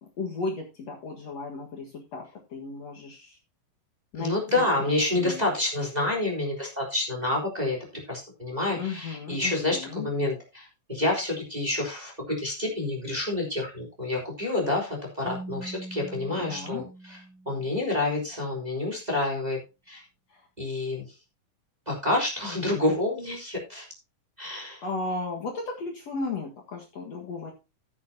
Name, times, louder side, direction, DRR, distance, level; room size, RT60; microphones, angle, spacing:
voice 1, 0.0-3.4 4.1-5.4 8.7-10.1 16.4-16.9 20.3-20.5 24.8-27.5, left 3 dB, 50° left, 0 dB, 2.6 m, -35 dB
voice 2, 4.2-7.8 8.1-17.2 17.4-19.6 19.9-20.0 20.6-21.0 21.9-23.8 24.4-24.8, left 2 dB, 10° right, 0 dB, 3.4 m, -28 dB
Keyboard (musical), 15.2-18.0, right 2 dB, 70° left, 5.3 m, -42 dB
15.5 x 7.8 x 2.8 m, 0.27 s
omnidirectional pair, 4.1 m